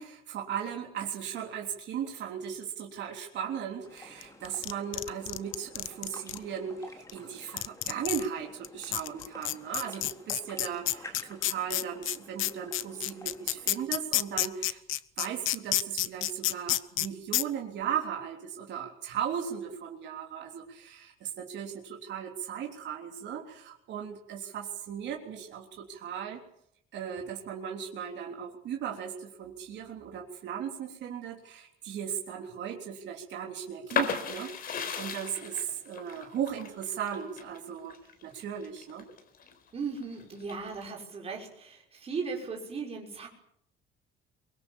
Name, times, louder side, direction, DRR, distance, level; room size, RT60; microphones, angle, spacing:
voice 1, 0.0-14.8 15.2-26.4 26.9-37.9 38.2-39.1, right 8 dB, 55° right, 0 dB, 3.6 m, -37 dB
sound 1, 3.8-13.8, left 2 dB, 15° left, 3.7 m, -51 dB
sound 2, 4.2-6.4 7.1-7.2 7.6-8.3 8.6-8.7 8.9-17.1 17.3-17.4, left 15 dB, 70° left, 0.9 m, -29 dB
sound 3, 33.9-39.5 40.0-40.8, left 6 dB, 45° left, 4.1 m, -35 dB
voice 2, 39.7-43.3, right 5 dB, 30° right, 0 dB, 6.0 m, -37 dB
23.5 x 23.5 x 7.3 m, 0.73 s
cardioid pair, 165°, 21 cm